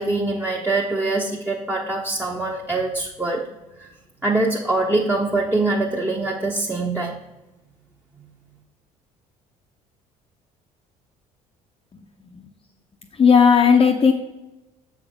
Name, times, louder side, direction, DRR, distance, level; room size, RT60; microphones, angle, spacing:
voice 1, 0.0-3.4 3.8-3.9 4.2-7.2, right 2 dB, 10° right, -2 dB, 1.1 m, -23 dB
voice 2, 13.1-14.1, left 6 dB, 30° left, 1 dB, 0.8 m, -15 dB
7.0 x 5.1 x 5.0 m, 1.0 s
hypercardioid pair, 60°, 17 cm